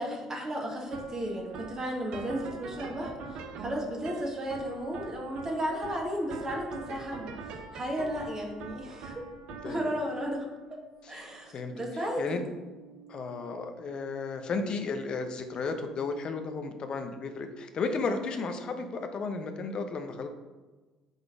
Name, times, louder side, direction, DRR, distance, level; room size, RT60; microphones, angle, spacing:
voice 1, 0.0-9.3 9.6-10.8 11.1-12.4, equal, 30° right, -1 dB, 1.6 m, -34 dB
sound 1, 0.8-18.0, right 4 dB, 60° right, 0.7 m, -46 dB
voice 2, 13.1-20.3, left 4 dB, 45° left, 6 dB, 0.8 m, -33 dB
5.4 x 3.9 x 4.7 m, 1.3 s
figure-of-eight pair, 50°, 2 cm